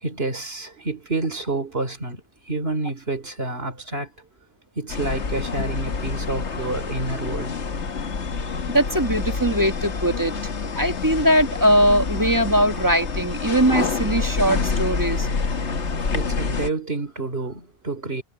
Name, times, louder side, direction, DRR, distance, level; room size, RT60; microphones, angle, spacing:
voice 1, 0.0-4.1 4.8-7.6 16.1-18.2, right 2 dB, 55° right, 3.8 m, -29 dB
sound 1, 4.9-16.7, left 4 dB, 65° left, 1.7 m, -27 dB
voice 2, 8.7-15.3, equal, 15° right, 1.7 m, -21 dB
omnidirectional pair, 1.3 m